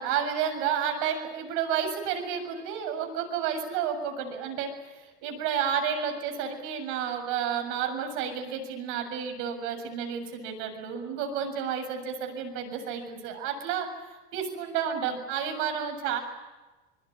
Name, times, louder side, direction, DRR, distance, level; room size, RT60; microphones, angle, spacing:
voice 1, 0.0-13.9 14.3-16.2, right 8 dB, 65° right, 5 dB, 7.2 m, -31 dB
25.0 x 22.5 x 9.8 m, 1.2 s
hypercardioid pair, 90°, 33 cm